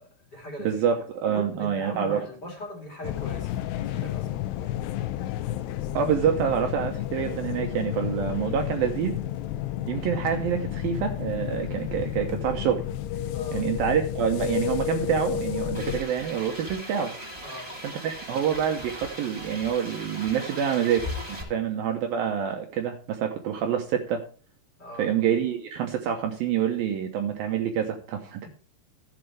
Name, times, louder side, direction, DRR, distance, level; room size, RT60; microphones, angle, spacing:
voice 1, 0.0-0.8 1.3-4.3 13.3-13.7 17.4-17.7 20.3-20.8 21.3-21.6 24.8-25.2, left 1 dB, 25° left, 3.9 m, -41 dB
voice 2, 0.6-2.2 5.9-9.1 9.9-12.8 13.5-17.1 18.0-21.0 21.3-24.2 25.0-28.5, right 8 dB, 70° right, 2.6 m, -27 dB
sound 1, 3.0-16.0, left 11 dB, 80° left, 2.7 m, -31 dB
sound 2, 15.7-21.4, equal, 5° right, 3.2 m, -38 dB
14.5 x 8.1 x 3.4 m
omnidirectional pair, 4.8 m